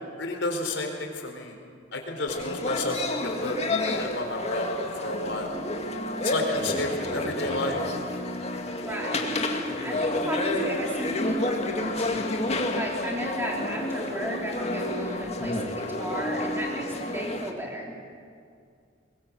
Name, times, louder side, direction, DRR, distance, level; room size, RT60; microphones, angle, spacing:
voice 1, 0.2-1.6 1.9-3.6 4.0-5.6 6.2-7.8, left 2 dB, 75° left, 3 dB, 4.4 m, -31 dB
sound 1, 2.3-17.5, left 1 dB, 35° left, 2.1 m, -30 dB
voice 2, 8.8-9.5 9.8-12.4 12.7-18.0, equal, 10° right, -2 dB, 4.3 m, -34 dB
22.5 x 22.0 x 7.7 m, 2.3 s
head